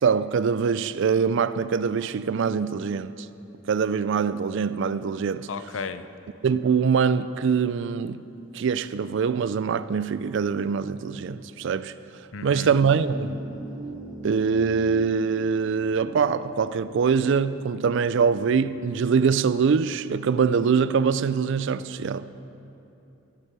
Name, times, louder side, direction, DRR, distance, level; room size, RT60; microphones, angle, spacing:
voice 1, 0.0-3.1 3.7-5.5 6.4-8.2 8.5-11.9 12.4-13.4 14.2-22.2, right 6 dB, 65° right, 0.4 m, -23 dB
voice 2, 5.5-6.0 12.3-12.8, left 5 dB, 80° left, 0.5 m, -34 dB
sound 1, 12.9-19.9, right 2 dB, 5° right, 1.9 m, -43 dB
14.5 x 8.2 x 6.0 m
head